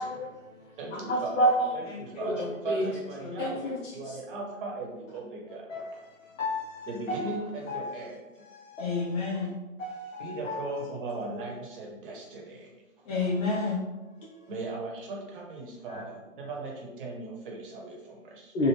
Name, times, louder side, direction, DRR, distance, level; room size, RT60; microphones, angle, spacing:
voice 1, 0.0-1.7 2.2-2.3 2.7-2.9 3.4-4.2 5.7-7.4 7.7-7.9 8.4-9.0 9.8-10.7 15.9-16.0 16.4-16.5 18.5-18.7, equal, 65° left, 0.7 m, -31 dB
voice 2, 0.8-1.4 1.7-5.7 6.9-8.4 10.2-12.7 14.5-18.5, right 2 dB, 40° right, 0.9 m, -38 dB
voice 3, 1.9-3.5 8.8-9.5 13.1-13.8, left 4 dB, 30° left, 0.7 m, -32 dB
3.3 x 2.1 x 3.3 m
figure-of-eight pair, 125°, 41 cm